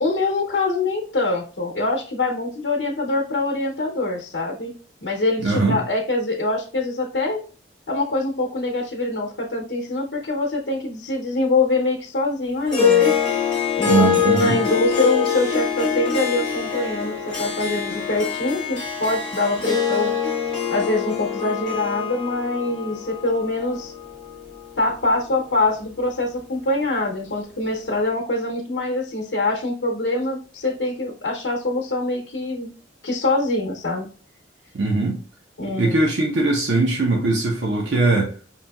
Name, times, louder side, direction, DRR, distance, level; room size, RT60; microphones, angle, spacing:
voice 1, 0.0-4.7 5.0-7.4 7.9-13.1 13.8-20.1 20.7-23.9 24.8-32.7 33.0-34.1 35.6-36.0, left 2 dB, 75° left, 0.7 m, -24 dB
voice 2, 5.4-5.8 13.8-14.6 34.7-35.2 35.6-38.3, right 3 dB, 85° right, 0.7 m, -20 dB
Harp, 12.7-25.2, left 7 dB, 5° left, 1.6 m, -24 dB
5.5 x 2.7 x 2.2 m
head